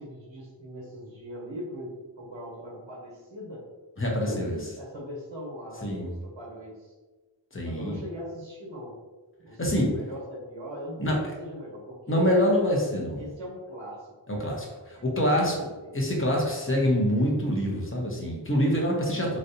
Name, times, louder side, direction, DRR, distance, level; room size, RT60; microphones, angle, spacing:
voice 1, 0.0-1.9 2.2-3.6 4.2-6.9 7.6-8.9 9.4-12.2 13.1-14.4 14.9-15.9, equal, 80° right, -5 dB, 1.3 m, -40 dB
voice 2, 4.0-4.6 5.8-6.1 7.5-8.0 9.6-9.9 11.0-11.2 12.1-13.2 14.3-15.6 15.9-19.4, equal, 30° left, -2 dB, 0.9 m, -25 dB
3.1 x 2.6 x 2.7 m, 1.2 s
cardioid pair, 40°, 45 cm